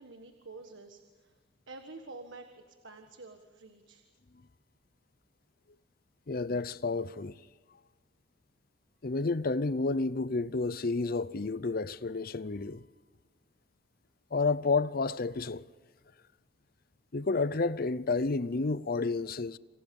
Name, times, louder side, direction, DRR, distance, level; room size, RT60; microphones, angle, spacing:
voice 1, 0.0-1.4 1.7-4.1, right 3 dB, 70° right, 1.6 m, -49 dB
voice 2, 6.3-7.4 9.0-12.8 14.3-15.6 17.1-19.6, left 3 dB, 50° left, 0.6 m, -30 dB
28.0 x 27.5 x 5.4 m
head